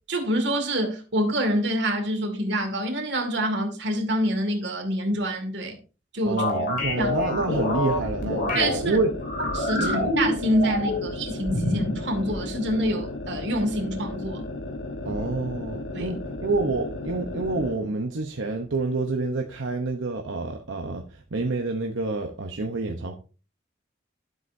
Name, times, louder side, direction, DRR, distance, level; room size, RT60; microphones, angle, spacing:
voice 1, 0.1-5.8 6.1-6.4 7.0-7.1 8.5-9.0 9.5-14.5 15.9-16.1, equal, 60° right, 2.2 m, -26 dB
voice 2, 6.2-9.1 9.8-10.1 15.0-23.2, right 3 dB, 80° right, 0.9 m, -28 dB
sound 1, 6.4-8.7 9.2-11.1 11.4-12.0, left 2 dB, 45° left, 3.3 m, -27 dB
sound 2, 6.8-17.8, left 2 dB, 70° left, 1.3 m, -35 dB
12.0 x 7.9 x 2.7 m
head